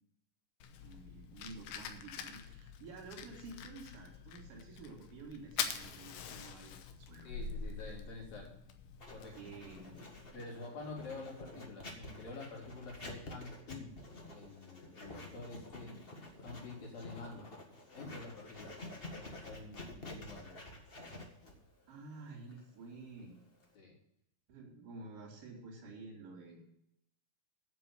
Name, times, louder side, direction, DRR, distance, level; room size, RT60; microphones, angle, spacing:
Fire, 0.6-10.3, left 7 dB, 80° left, 2.4 m, -45 dB
voice 1, 0.8-7.3 9.3-10.0 21.9-23.4 24.5-26.6, right 3 dB, 80° right, -2 dB, 4.4 m, -51 dB
voice 2, 7.2-8.5 9.1-9.4 10.3-14.0 14.3-15.9 16.4-17.6 17.9-20.6 23.7-24.0, left 3 dB, 55° left, -2 dB, 4.5 m, -48 dB
Writing, 9.0-23.7, left 1 dB, 35° left, 0.9 m, -50 dB
9.5 x 7.8 x 7.1 m, 0.77 s
omnidirectional pair, 3.9 m